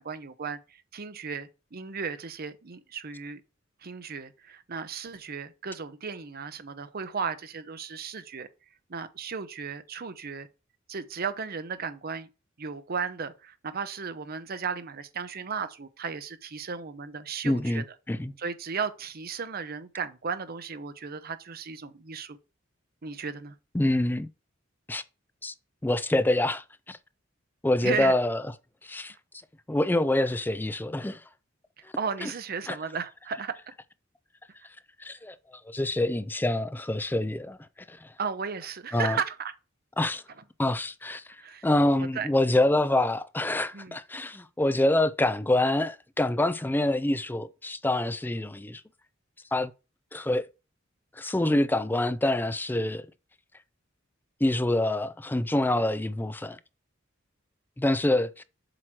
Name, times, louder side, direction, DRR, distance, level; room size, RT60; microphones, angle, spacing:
voice 1, 0.0-3.4 3.8-8.5 8.9-10.5 10.9-12.3 12.6-17.8 18.4-22.4 23.0-23.5 27.8-28.1 32.0-33.6 38.2-39.5 41.4-41.7 42.1-42.3 43.7-44.0, right 6 dB, 50° right, 0.7 m, -35 dB
voice 2, 17.4-18.3 23.7-24.3 24.9-25.0 25.4-25.5 25.8-27.0 27.6-28.4 28.8-29.1 29.7-31.2 32.2-32.3 32.7-32.8 35.0-35.4 35.7-37.6 37.9-38.1 38.9-39.2 40.0-40.2 40.6-41.2 41.6-48.8 49.5-49.7 50.1-50.5 51.2-53.0 54.4-56.6 57.8-58.4, left 1 dB, 10° left, 0.4 m, -26 dB
7.7 x 3.1 x 6.0 m
head